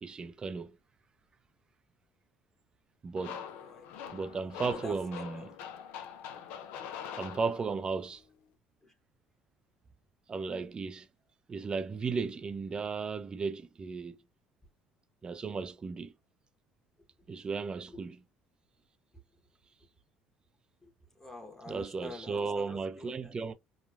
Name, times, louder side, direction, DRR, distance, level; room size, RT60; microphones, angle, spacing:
voice 1, 0.0-0.8 3.0-3.4 4.1-5.5 7.1-8.2 10.3-11.1 11.5-14.2 15.2-16.1 17.3-18.2 21.7-23.5, right 4 dB, 30° right, 0.5 m, -35 dB
sound 1, 3.2-8.0, left 8 dB, 75° left, 0.5 m, -44 dB
voice 2, 3.4-4.1 4.6-5.5 8.8-8.9 17.9-18.0 20.8-23.3, left 2 dB, 15° left, 1.1 m, -48 dB
3.0 x 2.3 x 2.3 m
supercardioid pair, 85°, 3 cm